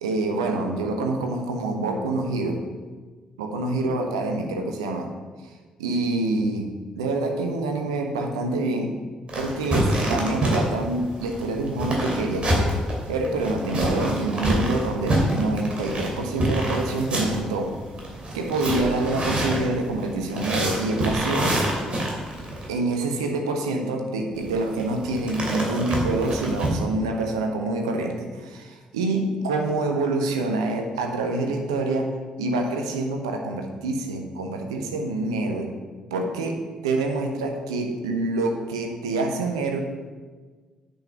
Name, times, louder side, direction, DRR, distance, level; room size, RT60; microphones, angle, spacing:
voice 1, 0.0-2.6 3.4-5.1 5.8-6.7 7.0-8.9 9.3-12.8 13.1-17.7 18.3-21.5 22.7-35.7 36.1-39.8, right 2 dB, 80° right, 3 dB, 0.9 m, -26 dB
sound 1, 9.3-22.7 24.3-26.7, right 1 dB, 40° right, 2.8 m, -27 dB
9.2 x 5.5 x 5.7 m, 1.4 s
figure-of-eight pair, 45°, 3 cm